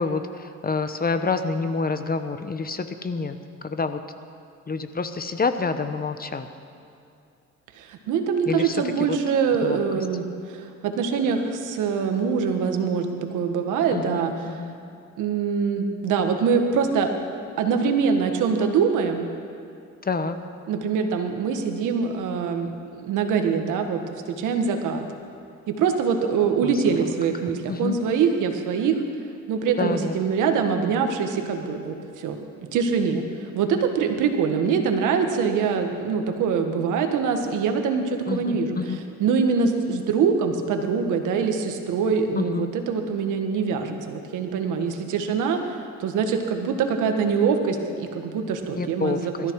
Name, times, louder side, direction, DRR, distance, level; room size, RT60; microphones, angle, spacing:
voice 1, 0.0-3.4 3.6-4.0 4.7-6.5 8.5-8.8 9.6-9.8 13.9-14.7 20.0-20.4 26.6-27.0 27.7-28.0 29.8-30.2 38.3-39.0 42.4-42.7 48.8-49.5, left 4 dB, 30° left, 9 dB, 1.1 m, -27 dB
voice 2, 7.8-14.3 15.2-17.1 17.6-19.3 20.7-25.0 25.7-29.0 29.5-32.4 32.7-33.2 33.5-49.5, right 6 dB, 90° right, 5 dB, 1.6 m, -24 dB
22.5 x 13.5 x 4.8 m, 2.6 s
cardioid pair, 90°, 30 cm